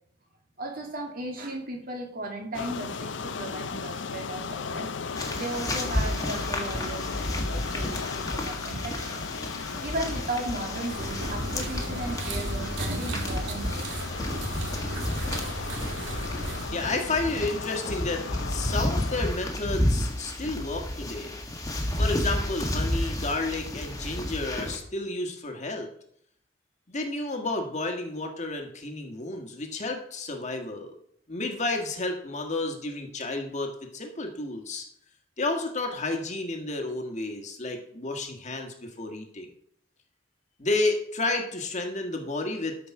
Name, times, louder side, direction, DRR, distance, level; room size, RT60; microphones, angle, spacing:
voice 1, 0.6-4.9 5.3-9.2 9.8-13.9, right 2 dB, 50° right, 1 dB, 2.4 m, -36 dB
sound 1, 2.5-19.2, left 5 dB, 80° left, 0.6 m, -36 dB
sound 2, 5.2-24.8, left 1 dB, 20° left, 1.5 m, -32 dB
sound 3, 10.8-16.8, right 1 dB, 85° right, 1.6 m, -34 dB
voice 2, 16.7-21.4 21.9-25.9 26.9-30.9 31.3-34.8 35.4-39.5 40.6-42.8, left 2 dB, 40° left, 3 dB, 1.5 m, -31 dB
13.0 x 5.1 x 5.9 m, 0.67 s
head